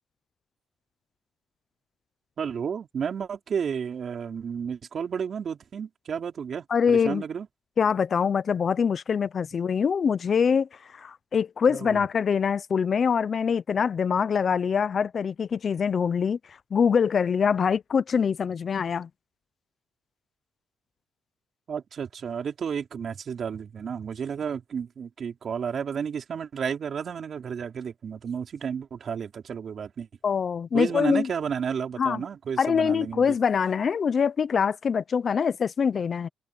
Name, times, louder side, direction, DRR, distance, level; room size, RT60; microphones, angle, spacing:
voice 1, 2.4-7.5 11.7-12.0 21.7-30.1 30.7-33.3, right 7 dB, 50° right, 4.6 m, -32 dB
voice 2, 6.7-7.2 7.8-19.1 30.2-31.3 32.0-32.2 32.6-36.3, left 6 dB, 45° left, 0.7 m, -24 dB
open air
cardioid pair, 90°, 0 cm